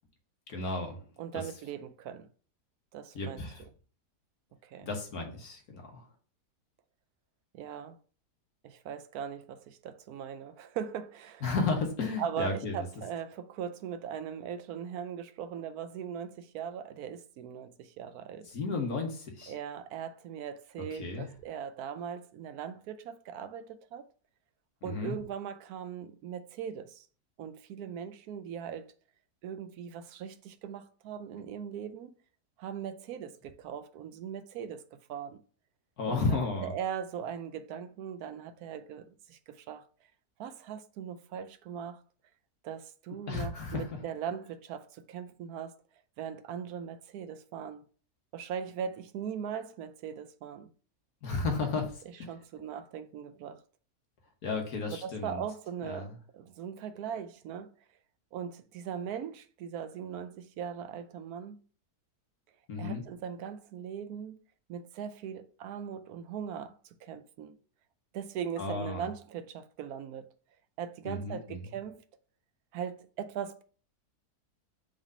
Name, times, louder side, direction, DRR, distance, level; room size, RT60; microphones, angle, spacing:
voice 1, 0.5-1.0 3.2-3.6 4.8-6.0 11.4-12.7 18.5-19.5 20.9-21.3 24.8-25.2 36.0-36.7 43.3-43.9 51.2-52.3 54.4-55.4 55.8-56.1 62.7-63.0 68.6-69.1 71.1-71.6, left 3 dB, 65° left, 1.7 m, -33 dB
voice 2, 1.2-2.3 2.9-3.4 4.6-4.9 7.5-8.0 8.6-11.4 12.2-18.5 19.5-24.0 24.8-27.1 27.4-28.9 29.4-32.1 32.6-35.4 36.1-39.9 40.4-42.0 42.6-45.8 46.2-47.8 48.3-50.7 52.1-53.6 54.9-57.7 58.3-61.6 62.8-64.4 64.7-67.6 68.1-70.3 70.8-72.0 72.7-73.6, right 8 dB, 75° right, 1.0 m, -40 dB
4.7 x 3.8 x 5.5 m
omnidirectional pair, 1.7 m